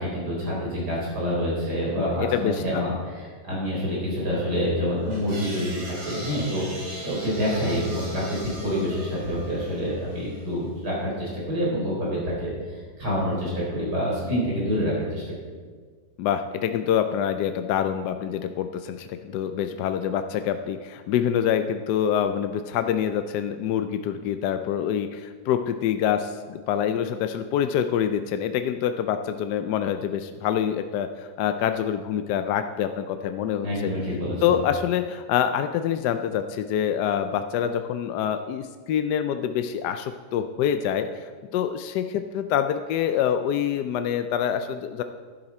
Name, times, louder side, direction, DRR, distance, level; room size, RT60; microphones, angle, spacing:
voice 1, 0.0-15.3 33.6-34.6, equal, 60° right, -5 dB, 4.8 m, -27 dB
voice 2, 2.0-3.0 16.2-33.9 34.4-45.0, left 9 dB, 75° left, 8 dB, 1.1 m, -26 dB
sound 1, 5.1-10.5, equal, 85° right, 4.0 m, -40 dB
11.5 x 10.5 x 4.3 m, 1.5 s
omnidirectional pair, 2.0 m